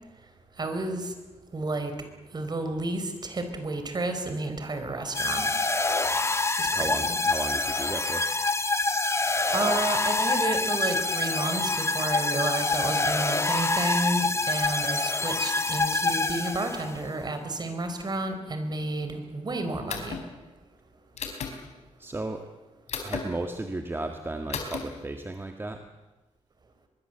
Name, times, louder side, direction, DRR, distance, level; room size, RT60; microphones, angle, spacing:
voice 1, 0.6-1.1 1.5-1.9 2.3-5.5 6.6-7.1 9.5-20.2, right 2 dB, 40° right, 7 dB, 4.6 m, -31 dB
sound 1, 5.1-17.0, left 3 dB, 25° left, 1.6 m, -26 dB
voice 2, 6.7-8.3 22.0-22.5 23.0-25.8, right 2 dB, 20° right, 5 dB, 1.8 m, -34 dB
sound 2, 19.9-20.2 21.2-21.5 22.9-23.2 24.5-24.8, left 6 dB, 80° left, 4.3 m, -33 dB
24.0 x 21.5 x 8.0 m, 1.2 s
cardioid pair, 95°, 11 cm